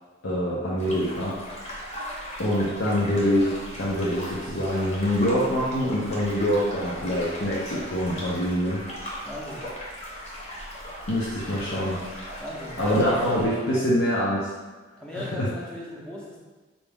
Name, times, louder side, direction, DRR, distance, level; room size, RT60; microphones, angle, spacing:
voice 1, 0.2-1.4 2.4-8.8 11.1-12.0 12.8-14.5 15.1-15.5, equal, 85° left, -6 dB, 0.7 m, -25 dB
sound 1, 0.8-13.5, equal, 35° left, 0.8 m, -38 dB
voice 2, 9.2-9.7 12.4-13.8 15.0-16.4, left 1 dB, 5° left, -5 dB, 0.6 m, -37 dB
4.0 x 2.3 x 3.4 m, 1.3 s
head